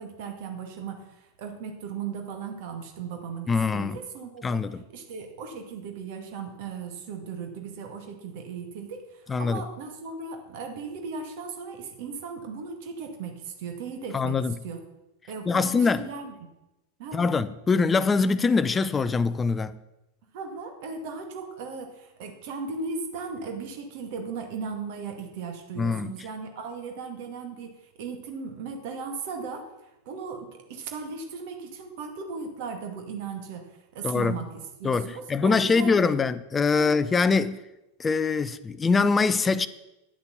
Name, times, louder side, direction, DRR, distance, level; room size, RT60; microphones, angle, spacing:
voice 1, 0.0-14.8 15.3-16.5 17.0-17.3 20.3-29.7 30.1-33.7 33.9-36.2 36.8-36.9, right 5 dB, 50° right, 2.1 m, -37 dB
voice 2, 3.5-4.0 4.4-4.8 9.3-9.6 14.1-14.5 15.5-16.0 17.1-19.8 25.8-26.1 34.0-34.4 34.8-37.6 38.0-39.7, left 4 dB, 15° left, 0.6 m, -23 dB
10.5 x 8.1 x 6.8 m
figure-of-eight pair, 90°, 0 cm